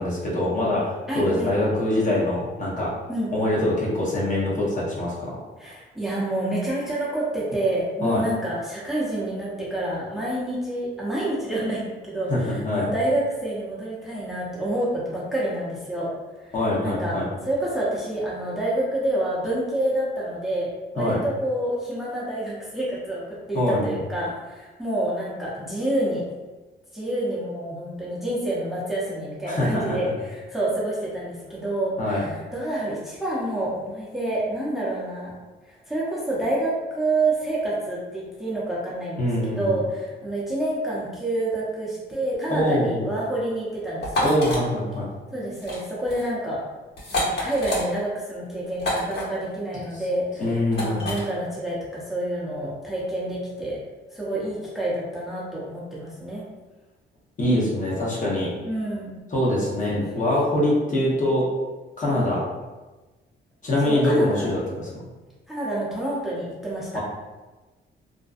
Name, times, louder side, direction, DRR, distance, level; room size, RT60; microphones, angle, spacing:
voice 1, 0.0-2.9 3.3-5.4 8.0-8.2 12.3-12.9 16.5-17.3 21.0-21.2 23.5-23.9 29.5-30.0 32.0-32.3 39.2-39.7 42.5-43.1 44.2-45.1 50.4-51.1 57.4-58.5 59.3-61.4 62.0-62.4 63.6-64.9 66.9-67.0, left 1 dB, 40° left, -6 dB, 0.9 m, -24 dB
voice 2, 1.1-1.5 3.1-3.4 5.6-16.1 16.4-17.1 17.4-23.2 23.5-26.2 26.9-35.4 35.6-44.3 45.3-46.6 47.1-50.5 50.8-53.8 54.1-56.4 58.6-59.1 59.9-60.6 62.0-62.3 63.8-64.5 65.5-67.0, right 1 dB, ahead, -7 dB, 0.7 m, -28 dB
sound 1, 44.0-44.6 45.5-45.8 46.1-46.3 47.0-47.8 48.8-49.2 50.7-51.2, left 1 dB, 55° left, 1.3 m, -27 dB
2.5 x 2.2 x 2.4 m, 1.2 s
cardioid pair, 90°, 20 cm